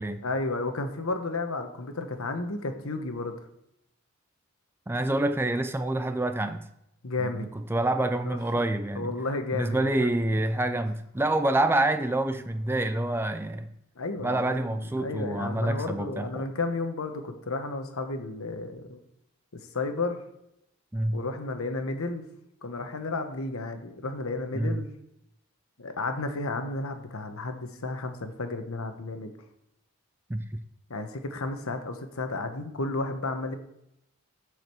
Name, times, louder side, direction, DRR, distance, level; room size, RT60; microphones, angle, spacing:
voice 1, 0.2-3.4 7.0-7.5 8.3-8.4 8.9-10.1 14.0-19.0 19.5-20.2 21.1-22.2 22.6-24.9 25.8-29.3 30.9-33.5, left 3 dB, 75° left, 1.0 m, -32 dB
voice 2, 4.9-6.7 7.2-9.1 9.5-13.7 14.2-16.5 20.9-21.2 24.5-24.8 30.3-30.6, right 1 dB, 10° right, 0.4 m, -27 dB
7.6 x 4.9 x 6.9 m
head